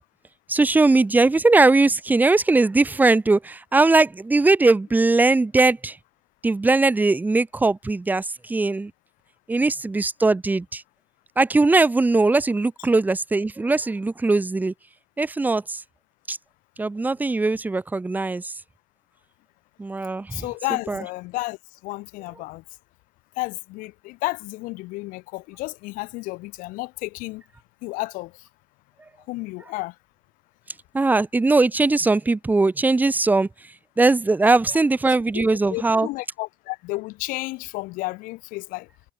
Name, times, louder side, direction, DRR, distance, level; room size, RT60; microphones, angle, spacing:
voice 1, 0.5-6.0 6.4-8.9 9.5-10.8 11.4-14.7 15.2-15.8 16.3-16.4 16.8-18.5 19.8-20.4 20.9-21.0 30.9-33.5 34.0-36.1, right 3 dB, 10° right, 0.9 m, -20 dB
voice 2, 20.3-21.6 21.8-22.6 23.4-27.4 27.8-28.3 29.3-29.9 35.3-38.9, left 22 dB, 70° left, 3.4 m, -32 dB
supercardioid pair, 105°, 15 cm